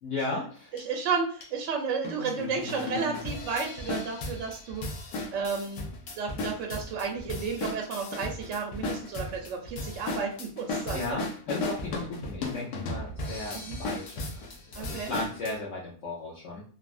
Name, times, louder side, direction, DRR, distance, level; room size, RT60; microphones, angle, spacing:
voice 1, 0.0-0.7 10.9-16.6, left 2 dB, 60° left, -6 dB, 1.0 m, -36 dB
sound 1, 0.8-0.9 1.4-1.5 2.0-15.5, left 2 dB, 80° left, 1.2 m, -36 dB
voice 2, 0.8-4.8 5.3-5.9 6.2-11.0 13.5-13.8 14.7-15.1, right 5 dB, 65° right, 1 dB, 0.8 m, -32 dB
3.4 x 2.1 x 2.4 m, 0.44 s
omnidirectional pair, 1.6 m